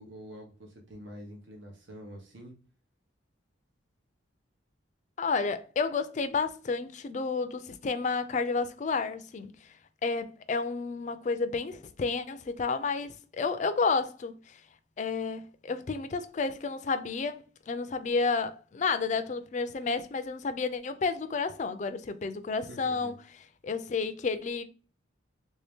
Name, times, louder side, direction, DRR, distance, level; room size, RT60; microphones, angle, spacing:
voice 1, 0.0-2.5 22.7-23.1, equal, 70° right, 0.9 m, -46 dB
voice 2, 5.2-9.5 10.0-14.6 15.0-23.1 23.6-24.6, left 4 dB, 35° left, 0.3 m, -31 dB
3.3 x 2.7 x 3.4 m
head